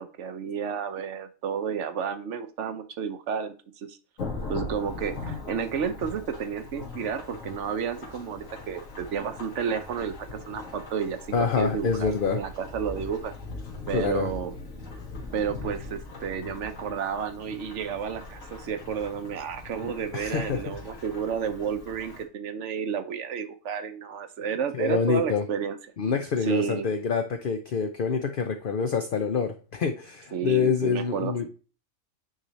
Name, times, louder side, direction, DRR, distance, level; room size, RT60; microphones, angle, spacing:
voice 1, 0.0-4.0 4.5-13.3 13.9-14.5 15.3-25.8 26.4-26.9 30.3-31.5, right 7 dB, 60° right, 9 dB, 1.1 m, -31 dB
Thunderstorm / Rain, 4.2-22.2, left 3 dB, 70° left, 2.0 m, -40 dB
voice 2, 11.3-12.4 13.9-14.3 20.1-20.8 24.4-25.4 26.0-31.5, left 5 dB, 50° left, 6 dB, 0.7 m, -26 dB
9.0 x 3.3 x 4.0 m, 0.37 s
omnidirectional pair, 1.4 m